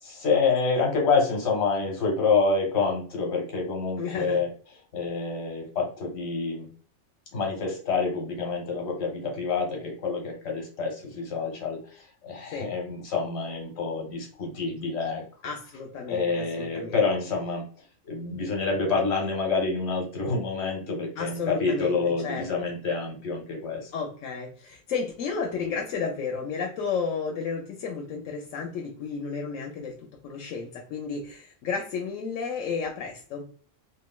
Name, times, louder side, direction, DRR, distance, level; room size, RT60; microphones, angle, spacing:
voice 1, 0.0-4.5 4.9-6.7 7.3-15.2 16.1-17.6 18.1-23.9, left 4 dB, 60° left, 0 dB, 1.3 m, -27 dB
voice 2, 4.0-4.4 12.5-12.7 15.4-17.0 21.2-22.5 23.9-33.5, left 5 dB, 85° left, 1 dB, 1.0 m, -32 dB
3.1 x 2.4 x 2.3 m, 0.42 s
omnidirectional pair, 1.3 m